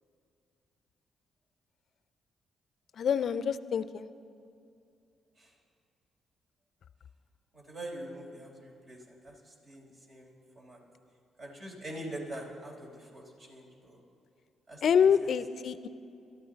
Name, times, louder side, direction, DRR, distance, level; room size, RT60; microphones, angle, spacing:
voice 1, 3.0-4.1 14.8-15.9, left 7 dB, 65° left, 14 dB, 0.5 m, -26 dB
voice 2, 7.5-10.8 11.4-14.0 14.7-15.3, right 1 dB, 55° right, -1 dB, 4.3 m, -44 dB
22.5 x 12.0 x 4.0 m, 2.5 s
supercardioid pair, 55°, 0 cm